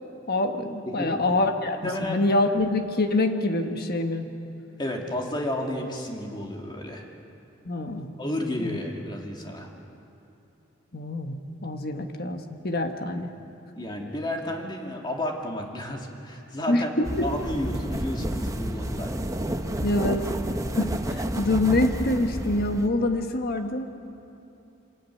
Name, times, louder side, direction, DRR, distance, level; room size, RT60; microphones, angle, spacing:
voice 1, 0.3-4.3 7.6-8.1 8.6-8.8 10.9-13.3 16.7-17.2 19.8-20.3 20.8-24.0, left 2 dB, 50° left, 5 dB, 1.4 m, -26 dB
voice 2, 0.9-1.2 1.8-2.2 4.8-7.0 8.2-9.7 13.8-16.9 17.2-19.1, left 1 dB, 25° left, 1 dB, 2.4 m, -32 dB
sound 1, 17.0-22.9, right 1 dB, 15° right, 1.0 m, -30 dB
25.0 x 14.0 x 9.5 m, 2.9 s
head